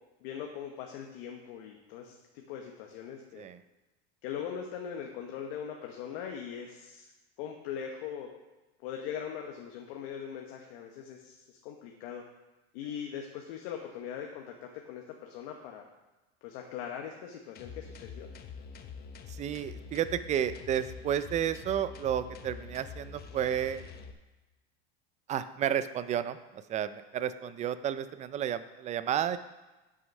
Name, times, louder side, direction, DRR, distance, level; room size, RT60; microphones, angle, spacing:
voice 1, 0.2-3.5 4.2-7.1 7.4-8.3 8.8-12.2 12.7-15.8 16.4-18.3, left 8 dB, 65° left, 2 dB, 1.2 m, -41 dB
sound 1, 17.6-24.1, left 6 dB, 30° left, 0.8 m, -46 dB
voice 2, 19.3-23.8 25.3-29.4, right 10 dB, 20° right, 13 dB, 0.4 m, -32 dB
9.2 x 6.4 x 5.4 m, 1.1 s
supercardioid pair, 120°, 32 cm